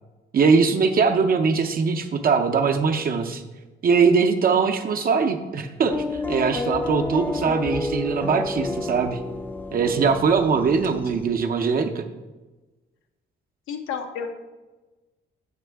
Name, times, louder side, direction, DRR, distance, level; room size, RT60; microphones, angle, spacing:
voice 1, 0.3-3.4 3.8-9.2 9.7-12.1, right 5 dB, 45° right, 4 dB, 0.6 m, -21 dB
sound 1, 5.9-11.3, left 2 dB, 10° left, 0.3 m, -30 dB
voice 2, 13.7-14.3, left 7 dB, 85° left, 5 dB, 0.8 m, -31 dB
8.0 x 4.5 x 3.4 m, 1.2 s
cardioid pair, 90°, 20 cm